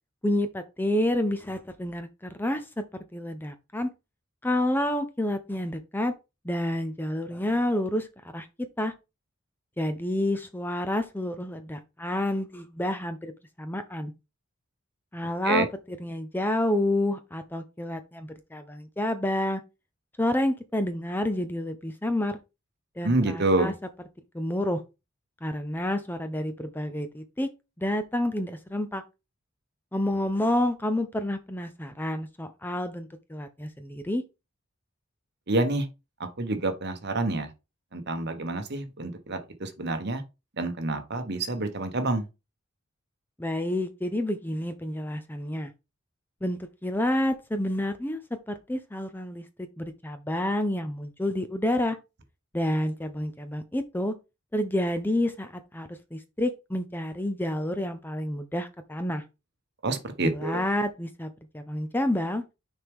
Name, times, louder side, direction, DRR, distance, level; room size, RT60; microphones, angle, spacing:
voice 1, 0.2-2.8 3.1-3.9 4.4-6.1 6.4-8.1 8.3-8.5 8.8-8.9 9.8-13.3 13.6-14.1 15.1-15.7 16.0-19.6 20.2-22.4 23.0-23.7 24.3-24.8 25.4-27.5 27.8-29.0 29.9-34.2 43.4-45.7 46.4-48.2 48.5-52.0 52.5-54.1 54.5-59.2 60.2-62.4, left 1 dB, 10° left, 0.5 m, -29 dB
voice 2, 23.0-23.7 35.5-35.9 36.4-37.5 37.9-40.2 40.6-42.3 59.8-60.6, right 2 dB, 50° right, 1.1 m, -27 dB
6.5 x 4.6 x 3.6 m
head